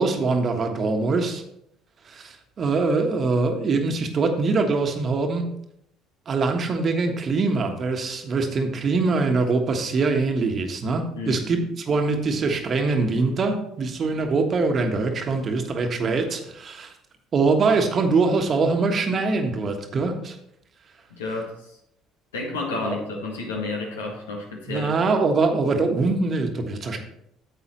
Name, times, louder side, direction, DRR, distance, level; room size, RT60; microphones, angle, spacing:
voice 1, 0.0-1.4 2.1-5.5 6.3-16.9 17.3-20.4 22.8-23.0 24.7-27.0, right 3 dB, 40° right, 5 dB, 1.4 m, -23 dB
voice 2, 21.1-21.8 22.3-24.9, left 3 dB, 80° left, 1 dB, 1.7 m, -31 dB
9.8 x 7.6 x 3.1 m, 0.75 s
figure-of-eight pair, 55°, 0 cm